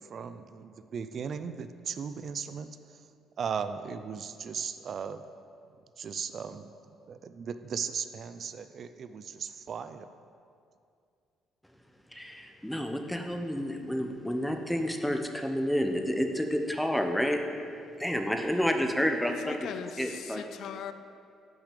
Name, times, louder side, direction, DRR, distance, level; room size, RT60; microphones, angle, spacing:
voice 1, 0.0-2.7 3.4-5.2 6.0-6.7 7.1-10.1, right 6 dB, 50° right, 11 dB, 0.4 m, -37 dB
voice 2, 12.1-17.4 18.0-19.6 20.0-20.4, equal, 5° left, 4 dB, 0.7 m, -29 dB
voice 3, 19.2-20.9, left 8 dB, 70° left, 11 dB, 0.3 m, -40 dB
6.1 x 5.0 x 6.6 m, 2.4 s
cardioid pair, 85°, 0 cm